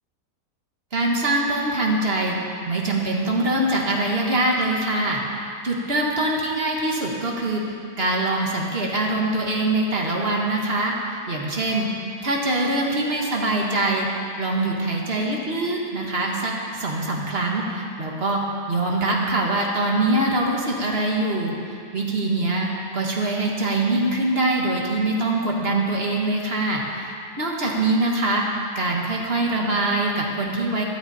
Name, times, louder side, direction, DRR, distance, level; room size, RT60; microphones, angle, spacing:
voice 1, 0.9-2.3 2.7-5.2 5.6-7.6 8.0-11.9 12.2-14.1 14.4-18.4 18.7-22.7 22.9-28.4 28.8-30.8, right 2 dB, 35° right, -1 dB, 1.8 m, -23 dB
14.0 x 13.0 x 4.3 m, 2.4 s
omnidirectional pair, 1.8 m